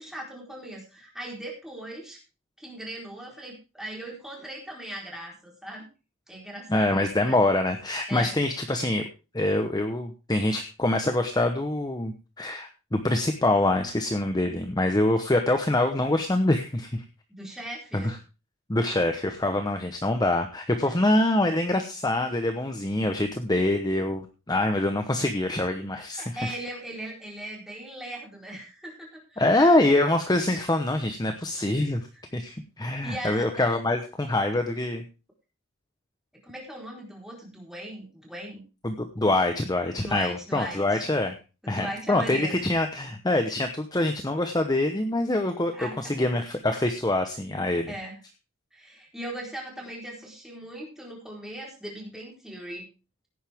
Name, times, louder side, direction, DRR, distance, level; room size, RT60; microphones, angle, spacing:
voice 1, 0.0-2.2 2.6-5.9 6.3-7.4 8.1-8.3 17.3-18.2 20.8-20.9 26.2-29.8 32.1-32.4 33.0-33.5 36.4-38.6 39.2-39.4 40.0-41.1 41.6-42.6 45.7-46.0 47.9-48.2 48.7-52.9, right 1 dB, ahead, -2 dB, 4.3 m, -39 dB
voice 2, 6.7-9.0 9.3-17.0 17.9-18.2 18.7-26.2 29.4-32.0 32.3-35.0 38.8-41.3 41.7-45.7 46.1-47.9, left 1 dB, 20° left, 6 dB, 1.0 m, -25 dB
16.5 x 9.6 x 3.6 m, 0.32 s
head